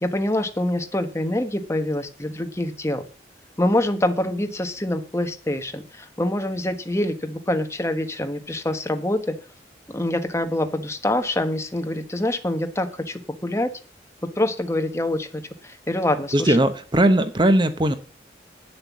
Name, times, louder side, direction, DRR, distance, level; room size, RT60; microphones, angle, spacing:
voice 1, 0.0-3.0 3.6-9.3 9.9-13.7 14.3-16.6, left 1 dB, 15° left, 6 dB, 1.3 m, -25 dB
voice 2, 16.3-17.9, right 1 dB, 25° right, 10 dB, 0.8 m, -18 dB
8.9 x 7.8 x 7.3 m, 0.37 s
head